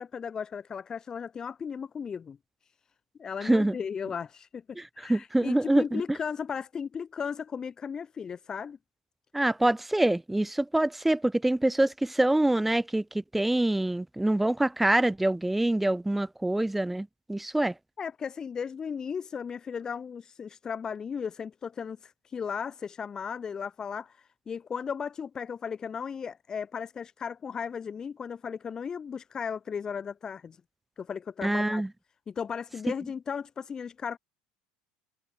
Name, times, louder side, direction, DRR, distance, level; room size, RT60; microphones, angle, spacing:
voice 1, 0.0-2.4 2.6-2.7 3.2-4.6 4.9-8.8 18.0-30.6 31.0-31.8 32.3-34.2, left 6 dB, 25° left, 4.5 m, -36 dB
voice 2, 5.1-6.0 9.3-13.0 13.3-17.7 31.4-31.9, right 1 dB, 5° right, 1.0 m, -25 dB
cardioid pair, 135°, 3 cm